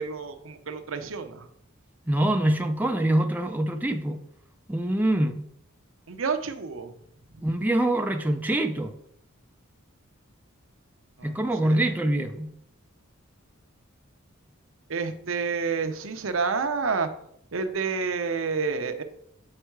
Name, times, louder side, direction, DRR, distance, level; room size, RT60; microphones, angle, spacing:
voice 1, 0.0-1.5 6.1-6.9 11.2-11.9 14.9-17.1 17.5-19.0, right 5 dB, 70° right, 8 dB, 0.7 m, -29 dB
voice 2, 2.1-4.2 4.7-5.5 7.4-8.9 11.2-12.5, right 1 dB, 10° right, 5 dB, 0.4 m, -25 dB
7.6 x 4.5 x 4.6 m, 0.72 s
head